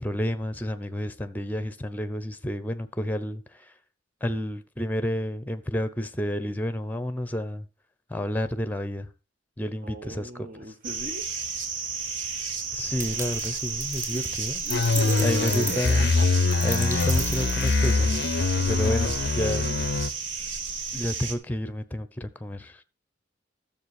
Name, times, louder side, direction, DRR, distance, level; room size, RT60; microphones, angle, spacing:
voice 1, 0.0-3.7 4.2-7.7 8.1-9.1 9.6-10.5 12.7-14.6 15.2-16.1 16.6-19.7 20.9-22.8, left 1 dB, 10° left, 0.8 m, -30 dB
voice 2, 9.6-11.2 14.1-16.3 17.5-17.7 18.5-18.9 19.6-19.8, right 2 dB, 45° right, 1.0 m, -38 dB
sound 1, 10.8-21.4, right 5 dB, 65° right, 1.8 m, -32 dB
sound 2, 13.0-18.2, right 2 dB, 15° right, 1.1 m, -37 dB
sound 3, 14.7-20.1, left 4 dB, 55° left, 0.5 m, -24 dB
12.5 x 7.2 x 4.8 m
head